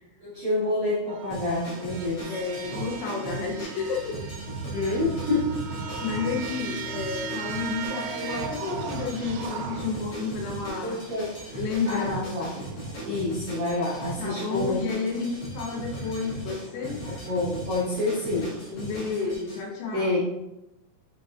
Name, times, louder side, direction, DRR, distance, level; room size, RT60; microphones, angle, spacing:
voice 1, 0.2-2.4 4.6-5.6 10.8-11.3 11.9-12.5 13.0-14.8 17.2-18.6 19.9-20.2, left 2 dB, 50° right, -11 dB, 1.9 m, -28 dB
sound 1, 1.1-19.4, right 6 dB, 80° right, 2.8 m, -40 dB
sound 2, 1.3-19.6, right 2 dB, 55° left, 1.6 m, -38 dB
voice 2, 2.3-4.2 5.8-11.0 11.6-12.4 14.2-17.0 18.7-20.2, left 5 dB, 80° left, 0 dB, 3.8 m, -31 dB
sound 3, 3.7-10.7 10.9-11.4 11.7-11.8, right 3 dB, 65° right, 2.3 m, -43 dB
8.2 x 5.3 x 2.9 m, 0.91 s
omnidirectional pair, 5.9 m